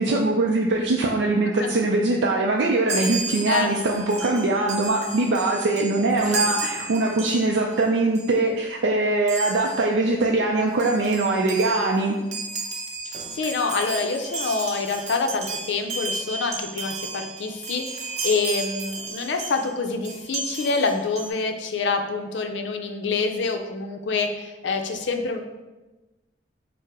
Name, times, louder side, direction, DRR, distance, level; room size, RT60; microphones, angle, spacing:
voice 1, 0.0-12.2, right 2 dB, 80° right, 0 dB, 0.4 m, -22 dB
Chime, 2.9-7.8 8.1-8.4 9.3-9.9 10.4-10.5 10.7-19.7 20.0-21.3, right 3 dB, 40° right, 0.6 m, -33 dB
voice 2, 13.0-25.4, left 4 dB, 85° left, 5 dB, 0.5 m, -26 dB
4.6 x 2.0 x 4.7 m, 1.1 s
head